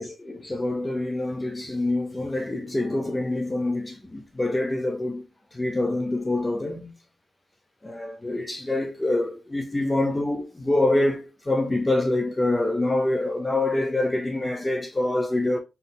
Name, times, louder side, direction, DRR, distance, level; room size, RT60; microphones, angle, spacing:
voice 1, 0.0-6.9 7.8-15.6, left 2 dB, 15° left, 0.4 m, -26 dB
3.7 x 2.7 x 3.6 m
wide cardioid pair, 170°, 0 cm